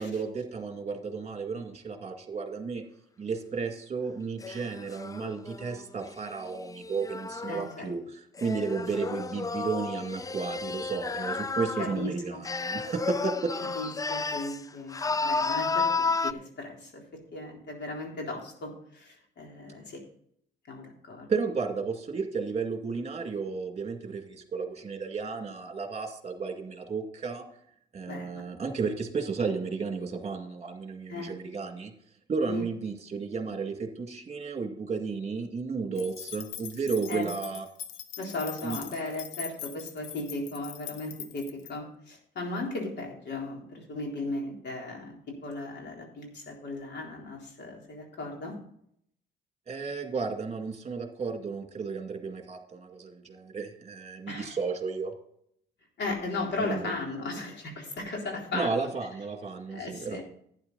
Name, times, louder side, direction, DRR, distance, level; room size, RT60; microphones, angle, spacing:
voice 1, 0.0-2.8 3.2-13.5 21.3-27.4 27.9-31.9 32.3-37.7 38.6-38.8 49.7-55.1 56.6-56.9 58.5-60.2, right 5 dB, 35° right, 4 dB, 2.2 m, -33 dB
sound 1, 4.4-7.8 8.4-12.0 12.4-14.6 14.9-16.3, left 4 dB, 20° left, 0.3 m, -32 dB
voice 2, 7.5-7.9 11.8-12.4 13.6-17.0 17.3-20.0 20.7-21.3 28.1-28.4 31.1-31.3 32.5-32.7 37.1-37.2 38.2-48.5 54.3-54.6 56.0-58.9 59.7-60.2, left 2 dB, 60° left, 0 dB, 3.7 m, -36 dB
sound 2, 35.9-41.7, left 9 dB, 85° left, 0.9 m, -42 dB
11.5 x 9.5 x 4.0 m, 0.68 s
cardioid pair, 90°, 20 cm